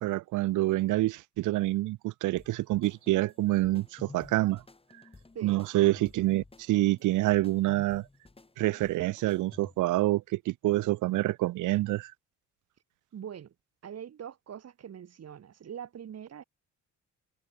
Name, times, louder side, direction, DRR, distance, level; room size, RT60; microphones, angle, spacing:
voice 1, 0.0-4.6 5.4-8.0 8.6-12.1, right 17 dB, 80° right, 0.7 m, -27 dB
sound 1, 2.4-10.0, left 3 dB, 20° left, 5.5 m, -53 dB
voice 2, 13.1-13.5 13.8-16.4, right 9 dB, 55° right, 3.9 m, -43 dB
cardioid pair, 90°, 30 cm